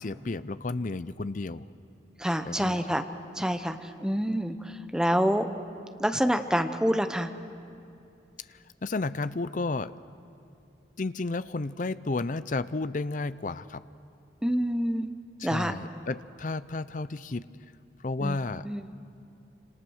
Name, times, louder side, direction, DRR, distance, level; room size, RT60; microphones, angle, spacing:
voice 1, 0.0-1.7 2.5-2.8 8.5-9.9 11.0-13.8 15.4-17.5 18.0-18.7, left 3 dB, 40° left, 15 dB, 0.5 m, -32 dB
voice 2, 2.2-3.0 3.4-5.5 6.0-7.3 14.4-15.1 15.4-15.7 18.2-18.4 18.6-18.8, equal, 5° right, 8 dB, 0.8 m, -27 dB
27.5 x 26.5 x 6.4 m, 2.6 s
head